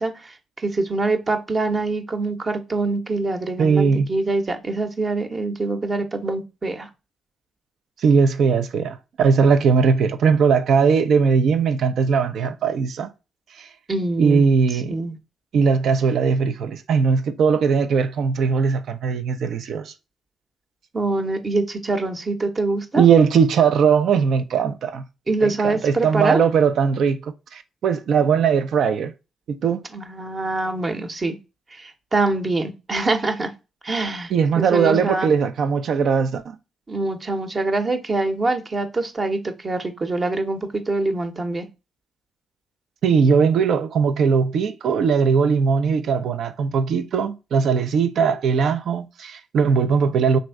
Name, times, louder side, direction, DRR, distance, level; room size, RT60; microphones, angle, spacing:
voice 1, 0.0-6.9 13.9-14.4 14.9-15.1 20.9-23.0 25.3-26.4 29.9-31.4 31.7-33.5 33.8-35.3 36.9-41.6, right 2 dB, 40° right, 0.8 m, -24 dB
voice 2, 3.6-4.1 8.0-13.1 13.6-13.7 14.2-14.9 15.5-19.9 22.9-25.0 25.4-29.1 29.5-29.8 34.3-36.6 43.0-50.4, right 6 dB, 65° right, 0.4 m, -19 dB
3.1 x 2.6 x 4.4 m
hypercardioid pair, 45°, 0 cm